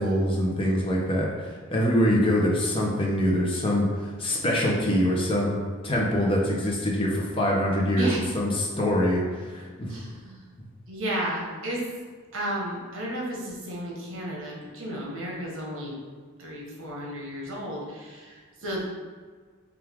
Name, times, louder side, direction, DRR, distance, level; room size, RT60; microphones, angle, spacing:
voice 1, 0.0-8.1 8.3-10.0, equal, 25° left, -2 dB, 0.6 m, -24 dB
voice 2, 9.9-10.4 10.9-11.9 12.3-15.9 16.4-18.8, right 1 dB, 75° right, -3 dB, 1.0 m, -33 dB
4.6 x 2.4 x 3.5 m, 1.5 s
head